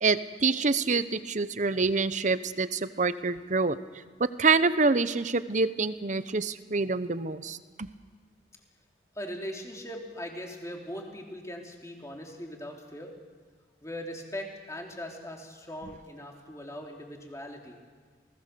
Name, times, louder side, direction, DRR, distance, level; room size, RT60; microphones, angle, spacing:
voice 1, 0.0-3.8 4.2-7.6, right 4 dB, 45° right, 13 dB, 0.9 m, -26 dB
voice 2, 9.1-13.1 13.8-17.8, equal, 15° left, 0 dB, 3.3 m, -40 dB
28.0 x 19.5 x 6.9 m, 1.5 s
head